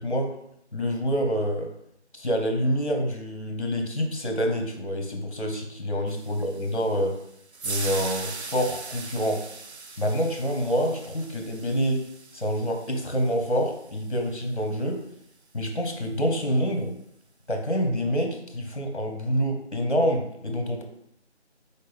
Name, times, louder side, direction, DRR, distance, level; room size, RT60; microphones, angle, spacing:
voice 1, 0.0-0.3 0.7-1.7 2.1-7.2 7.6-9.5 10.0-12.0 12.3-15.0 15.5-16.9 17.5-20.8, equal, 50° left, 3 dB, 1.0 m, -27 dB
sound 1, 6.1-14.4, right 4 dB, 65° right, 0.6 m, -40 dB
4.2 x 3.6 x 3.5 m, 0.74 s
figure-of-eight pair, 175°, 35 cm